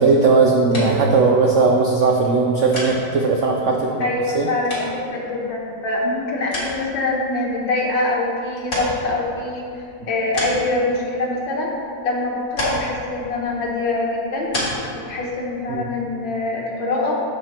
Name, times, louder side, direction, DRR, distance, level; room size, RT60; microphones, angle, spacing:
voice 1, 0.0-4.1 4.3-4.5 15.7-15.9, right 4 dB, 90° right, 0 dB, 0.6 m, -17 dB
sound 1, 0.6-16.3, left 1 dB, 50° left, 2.4 m, -33 dB
voice 2, 4.0-11.7 12.0-14.5 14.9-17.1, left 2 dB, 80° left, -2 dB, 2.0 m, -24 dB
14.0 x 5.2 x 2.9 m, 2.5 s
omnidirectional pair, 2.0 m